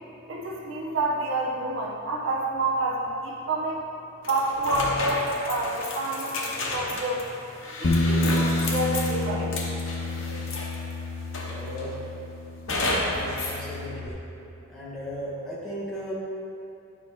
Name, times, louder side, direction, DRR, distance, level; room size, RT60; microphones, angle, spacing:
voice 1, 0.3-3.8 4.2-7.3 7.8-9.6, right 2 dB, 65° right, -3 dB, 0.8 m, -28 dB
sound 1, 4.2-10.9 11.3-11.9 12.7-13.6, left 2 dB, 65° left, 0.9 m, -31 dB
Bass guitar, 7.8-14.1, left 2 dB, 40° left, 0.4 m, -29 dB
voice 2, 11.5-12.0 13.1-14.2 14.7-16.1, equal, ahead, -9 dB, 1.3 m, -36 dB
9.2 x 5.1 x 3.1 m, 2.7 s
head